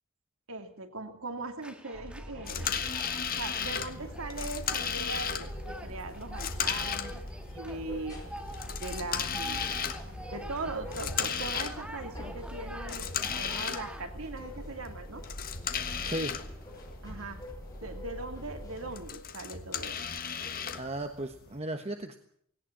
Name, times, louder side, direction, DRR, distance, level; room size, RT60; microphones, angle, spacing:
voice 1, 0.5-2.8 3.3-7.2 7.5-8.2 8.8-9.7 10.3-15.2 17.0-17.4 17.8-20.0, right 2 dB, 75° right, 6 dB, 2.5 m, -40 dB
sound 1, 1.6-14.1, right 1 dB, 5° right, 1.9 m, -47 dB
sound 2, 1.9-19.1, equal, 15° left, 5.1 m, -44 dB
sound 3, 2.5-21.6, left 7 dB, 45° left, 1.4 m, -36 dB
voice 2, 16.0-16.4 20.4-22.2, right 1 dB, 30° right, 6 dB, 1.2 m, -36 dB
18.5 x 18.0 x 8.9 m, 0.65 s
head